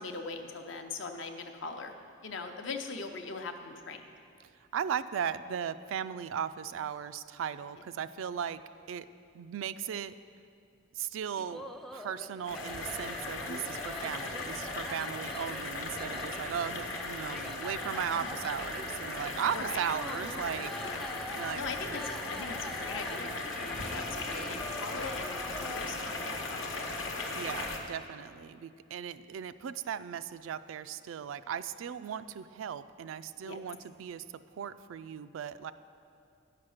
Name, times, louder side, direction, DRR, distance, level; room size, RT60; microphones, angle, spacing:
voice 1, 0.0-1.9 2.2-4.1 13.5-13.8 18.2-18.3 19.5-19.8 20.8-21.1 21.5-26.9 33.4-33.6, left 4 dB, 70° left, 5 dB, 0.7 m, -41 dB
voice 2, 4.7-8.6 8.9-9.1 9.3-10.2 10.9-11.7 11.9-20.7 21.3-21.7 27.3-34.2 34.5-35.7, right 8 dB, 80° right, 13 dB, 0.3 m, -37 dB
sound 1, 11.4-25.8, left 1 dB, ahead, 0.3 m, -46 dB
sound 2, 12.4-27.8, left 2 dB, 90° left, 1.1 m, -38 dB
10.0 x 5.9 x 6.4 m, 2.5 s
head